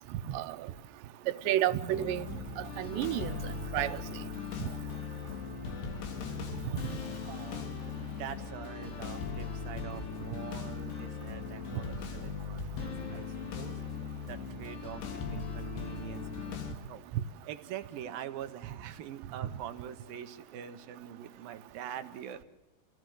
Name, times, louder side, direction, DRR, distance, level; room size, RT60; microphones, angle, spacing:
voice 1, 1.3-2.3 2.6-4.0 4.6-4.7, right 13 dB, 85° right, 3.1 m, -31 dB
sound 1, 1.9-16.7, left 5 dB, 75° left, 4.4 m, -39 dB
voice 2, 7.3-7.7 8.0-13.8 14.2-16.6 16.9-17.0 17.4-22.4, right 10 dB, 65° right, 2.7 m, -44 dB
27.5 x 17.0 x 7.9 m
omnidirectional pair, 4.9 m